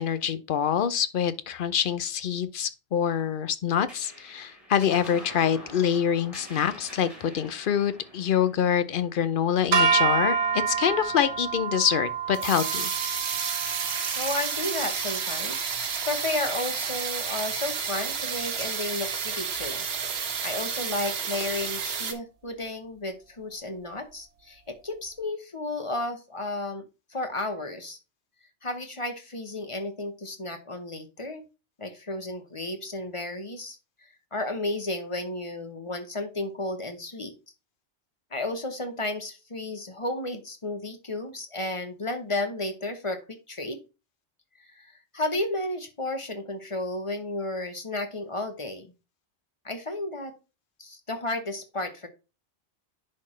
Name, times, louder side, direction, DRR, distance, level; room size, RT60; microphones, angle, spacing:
voice 1, 0.0-12.9, left 8 dB, 55° left, 0.7 m, -26 dB
sound 1, 3.9-10.7, equal, ahead, 3.9 m, -47 dB
sound 2, 9.7-16.1, right 5 dB, 80° right, 1.3 m, -28 dB
sound 3, 10.5-22.1, right 6 dB, 60° right, 1.1 m, -31 dB
voice 2, 14.1-19.8 20.2-26.8 27.1-28.0 28.6-31.4 31.8-37.3 38.3-43.8 44.6-48.9 49.6-50.3 50.8-52.1, left 2 dB, 30° left, 0.9 m, -33 dB
10.5 x 4.3 x 3.1 m
omnidirectional pair, 1.2 m